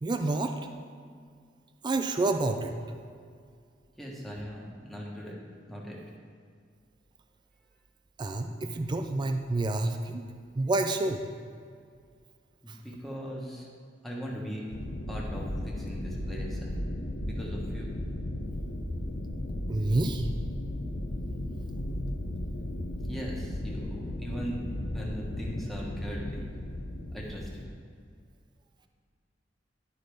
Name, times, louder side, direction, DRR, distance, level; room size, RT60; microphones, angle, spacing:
voice 1, 0.0-0.5 1.8-2.7 8.2-10.3 10.6-11.2 12.7-12.8 19.7-20.3, right 2 dB, 25° right, 6 dB, 0.4 m, -28 dB
voice 2, 4.0-5.4 5.7-6.0 12.6-13.7 14.0-14.7 15.1-16.8 17.3-17.9 23.0-26.4 27.1-27.7, equal, ahead, -4 dB, 1.3 m, -39 dB
sound 1, 14.7-27.7, left 1 dB, 70° left, 0.7 m, -35 dB
11.5 x 4.0 x 4.8 m, 2.1 s
head